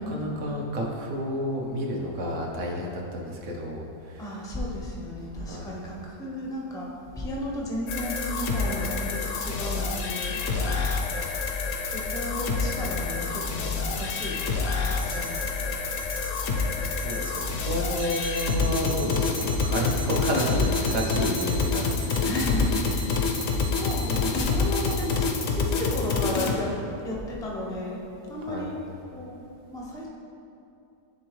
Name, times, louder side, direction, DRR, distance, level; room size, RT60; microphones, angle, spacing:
voice 1, 0.0-4.3 5.5-5.7 10.5-10.8 15.2-15.9 16.9-22.1 28.4-28.7, equal, 60° right, -1 dB, 1.0 m, -31 dB
voice 2, 4.2-6.9 7.2-10.4 11.8-15.4 22.2-26.7 27.0-28.0 28.3-28.8 29.1-30.1, left 1 dB, 5° left, -3 dB, 0.4 m, -34 dB
sound 1, 7.9-26.5, left 4 dB, 65° left, 0.9 m, -27 dB
sound 2, 15.0-15.4 16.0-16.4 17.0-17.4 18.0-25.3, right 3 dB, 80° right, 1.3 m, -40 dB
10.5 x 3.5 x 3.1 m, 2.7 s
omnidirectional pair, 1.6 m